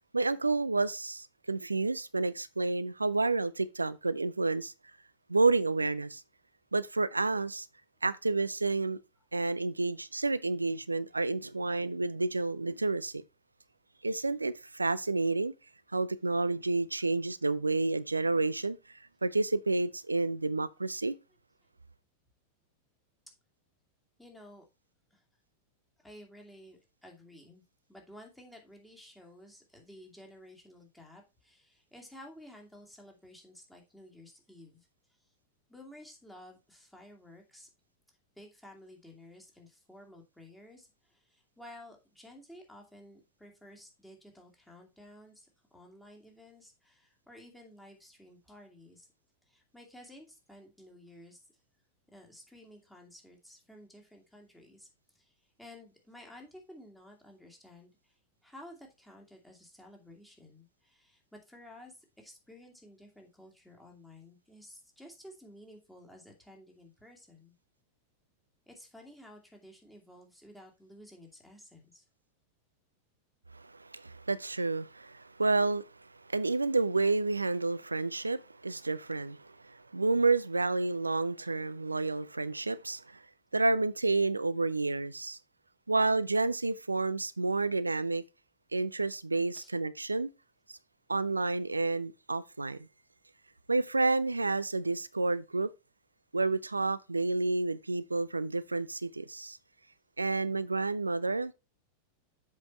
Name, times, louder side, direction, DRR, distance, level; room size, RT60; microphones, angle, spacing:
voice 1, 0.1-4.7 5.3-6.2 6.7-7.7 8.0-9.0 9.3-13.2 14.0-15.5 15.9-18.8 19.2-21.2 73.5-83.2 83.5-85.4 85.9-88.2 88.7-90.3 91.1-92.8 93.7-95.7 96.3-99.6 100.2-101.5, right 3 dB, 80° right, 0.4 m, -30 dB
voice 2, 24.2-24.6 25.1-25.2 26.0-27.6 27.9-34.9 35.7-37.7 38.4-45.5 45.7-49.1 49.5-51.5 52.1-67.5 68.7-72.0 89.5-89.7, left 1 dB, 5° left, 2.4 m, -53 dB
7.4 x 5.2 x 4.4 m
figure-of-eight pair, 90°, 0 cm